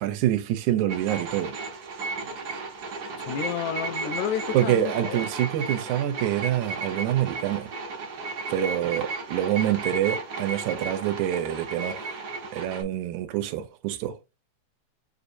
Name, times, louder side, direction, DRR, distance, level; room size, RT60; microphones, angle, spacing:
voice 1, 0.0-1.5 4.5-7.7 8.5-12.0 12.5-14.2, right 12 dB, 85° right, 2.0 m, -26 dB
sound 1, 0.9-12.8, right 4 dB, 65° right, 0.9 m, -34 dB
voice 2, 3.2-5.2, left 10 dB, 80° left, 1.9 m, -31 dB
6.5 x 2.6 x 2.6 m
omnidirectional pair, 3.4 m